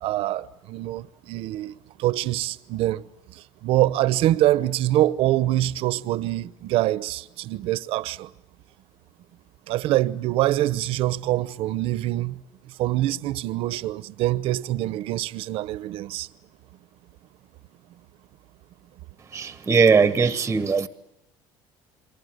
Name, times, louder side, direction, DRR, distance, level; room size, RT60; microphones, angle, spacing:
voice 1, 0.0-1.7 2.0-8.3 9.7-12.4 12.7-16.3, right 15 dB, 65° right, 0.9 m, -25 dB
voice 2, 19.3-20.9, right 5 dB, 20° right, 1.0 m, -20 dB
28.5 x 23.5 x 7.9 m
cardioid pair, 135°, 10 cm